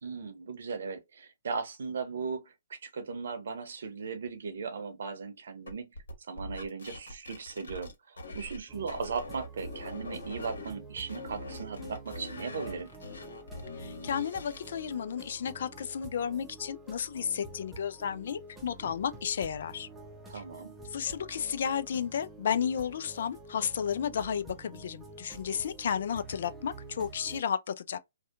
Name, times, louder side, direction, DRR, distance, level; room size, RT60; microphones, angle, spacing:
voice 1, 0.0-5.9 6.3-12.9 20.3-20.7, right 5 dB, 65° right, 0.7 m, -37 dB
sound 1, 5.7-8.6 8.9-10.7 11.1-14.8, left 2 dB, 75° left, 1.2 m, -43 dB
sound 2, 8.7-27.4, right 3 dB, 10° right, 0.6 m, -48 dB
voice 2, 13.8-19.9 20.3-20.4 20.9-28.0, left 8 dB, 60° left, 0.3 m, -33 dB
2.7 x 2.2 x 2.4 m
hypercardioid pair, 130°, 0 cm